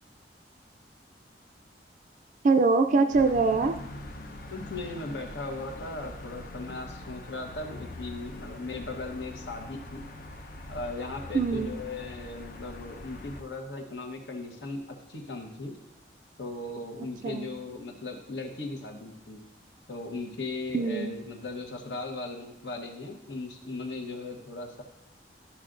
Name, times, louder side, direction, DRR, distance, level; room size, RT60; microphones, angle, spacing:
voice 1, 2.4-3.7 11.3-11.7 17.2-17.5 20.7-21.1, right 4 dB, 45° right, 7 dB, 0.4 m, -23 dB
sound 1, 3.1-13.4, left 1 dB, 55° left, 0.7 m, -43 dB
voice 2, 4.5-10.0 10.7-15.7 16.4-19.4 19.9-24.8, left 2 dB, 80° left, 3 dB, 1.2 m, -38 dB
12.5 x 5.7 x 2.6 m, 0.89 s
head